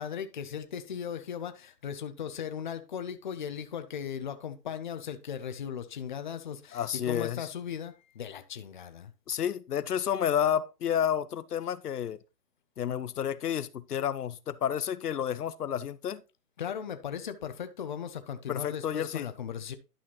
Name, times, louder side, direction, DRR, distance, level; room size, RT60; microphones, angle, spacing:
voice 1, 0.0-9.1 16.6-19.8, left 8 dB, 30° left, 0.6 m, -37 dB
voice 2, 6.7-7.5 9.3-12.2 12.8-16.2 18.5-19.3, left 9 dB, 70° left, 0.8 m, -30 dB
11.0 x 5.7 x 3.0 m
hypercardioid pair, 145°, 47 cm